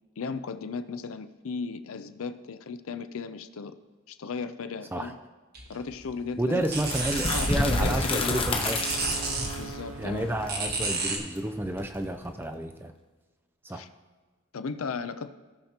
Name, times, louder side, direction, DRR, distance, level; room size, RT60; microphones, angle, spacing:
voice 1, 0.2-3.7 4.1-5.2 5.7-6.6 7.2-8.4 9.6-10.3 13.7-13.9 14.5-15.3, left 5 dB, 75° left, 12 dB, 0.5 m, -36 dB
sound 1, 5.5-11.2, right 3 dB, 45° right, 1.3 m, -33 dB
voice 2, 6.4-9.0 9.3-9.5 10.0-12.9 13.6-13.8, right 1 dB, 10° right, 7 dB, 0.4 m, -31 dB
sound 2, 6.6-12.4, left 2 dB, 25° left, 0.8 m, -30 dB
Wind instrument woodwind instrument, 6.8-10.9, right 5 dB, 75° right, 0.7 m, -43 dB
17.0 x 5.8 x 2.9 m, 1.3 s
head